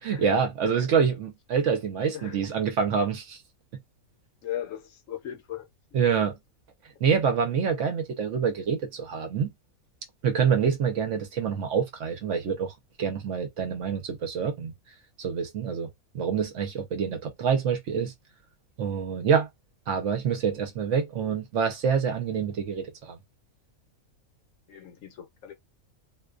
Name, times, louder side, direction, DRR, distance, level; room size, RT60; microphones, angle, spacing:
voice 1, 0.0-3.4 5.9-6.3 7.0-9.5 10.2-14.7 15.2-15.9 16.1-18.1 18.8-19.5 19.9-23.2, right 6 dB, 65° right, 0.9 m, -26 dB
voice 2, 2.1-2.5 4.4-5.7 24.7-25.5, left 11 dB, 70° left, 1.0 m, -38 dB
2.5 x 2.2 x 2.3 m
omnidirectional pair, 1.5 m